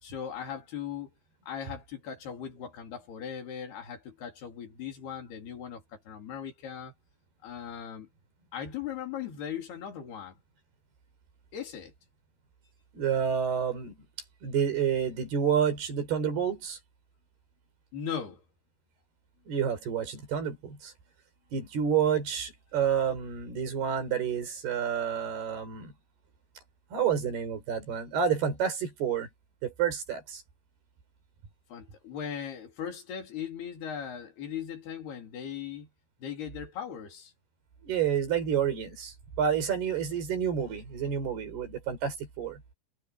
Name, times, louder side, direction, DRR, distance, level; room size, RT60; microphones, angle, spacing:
voice 1, 0.0-1.1 1.5-6.9 7.4-8.1 8.5-10.4 11.5-11.9 17.9-18.4 31.7-35.9 36.2-37.3, left 8 dB, 85° left, 5.5 m, -38 dB
voice 2, 12.9-14.0 14.4-16.8 19.5-20.9 21.5-25.9 26.9-29.3 29.6-30.4 37.8-42.6, right 8 dB, 80° right, 6.9 m, -29 dB
omnidirectional pair, 4.5 m